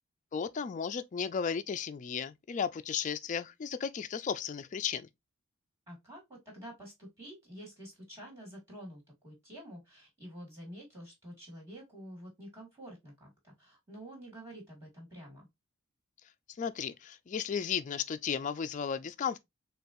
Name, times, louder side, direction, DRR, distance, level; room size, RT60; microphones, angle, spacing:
voice 1, 0.3-5.1 16.6-19.4, left 7 dB, 35° left, 0.3 m, -34 dB
voice 2, 5.9-15.5, equal, 15° right, 2.3 m, -49 dB
6.7 x 2.3 x 2.5 m
head